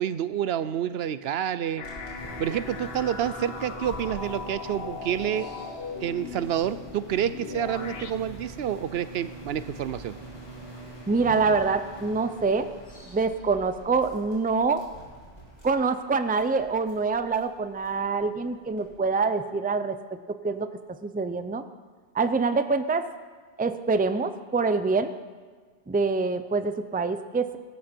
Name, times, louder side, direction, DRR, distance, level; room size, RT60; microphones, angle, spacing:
voice 1, 0.0-1.8 2.4-5.5 6.0-10.2, right 10 dB, 75° right, 14 dB, 0.8 m, -28 dB
sound 1, 1.8-8.1, left 5 dB, 75° left, 1.2 m, -38 dB
sound 2, 1.8-19.0, right 2 dB, 40° left, 4.3 m, -44 dB
voice 2, 11.1-12.7 13.1-14.8 15.6-20.0 20.3-20.7 21.0-21.6 22.1-23.1 23.6-25.1 25.9-27.6, right 4 dB, 10° right, 10 dB, 0.5 m, -25 dB
18.0 x 13.5 x 4.5 m, 1.5 s
omnidirectional pair, 1.1 m